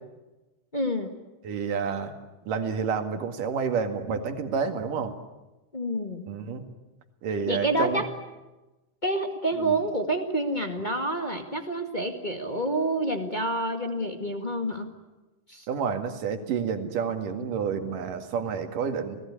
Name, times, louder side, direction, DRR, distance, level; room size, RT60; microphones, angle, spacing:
voice 1, 0.7-1.1 5.7-6.3 7.4-8.1 9.0-14.9 15.5-15.6, right 1 dB, 20° left, 4 dB, 1.3 m, -28 dB
voice 2, 1.4-2.1 2.5-5.2 6.3-6.6 7.2-8.0 9.6-9.8 15.7-19.2, right 6 dB, 85° right, 7 dB, 3.6 m, -29 dB
29.0 x 19.0 x 9.9 m, 1.1 s
omnidirectional pair, 3.7 m